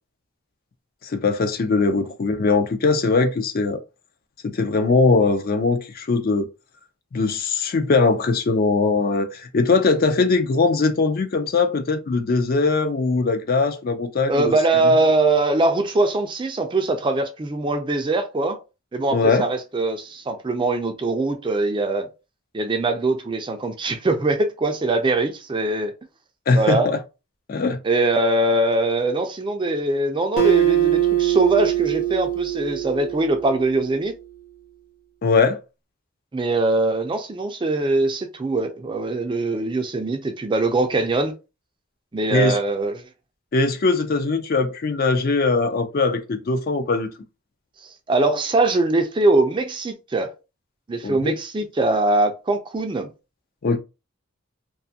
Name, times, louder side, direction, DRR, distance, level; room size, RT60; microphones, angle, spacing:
voice 1, 1.0-3.8 4.4-6.5 7.1-14.9 19.1-19.5 26.5-27.0 27.5-27.8 35.2-35.6 42.3-42.6 43.5-47.1 51.0-51.4 53.6-53.8, left 3 dB, 45° left, 0.4 m, -21 dB
voice 2, 14.3-18.6 18.9-22.1 22.5-25.9 26.5-26.9 27.8-34.1 36.3-41.3 42.1-43.0 48.1-50.3 50.9-53.1, right 2 dB, 25° right, 0.3 m, -22 dB
Acoustic guitar, 30.4-33.9, right 11 dB, 80° left, 0.8 m, -22 dB
2.5 x 2.3 x 2.7 m
head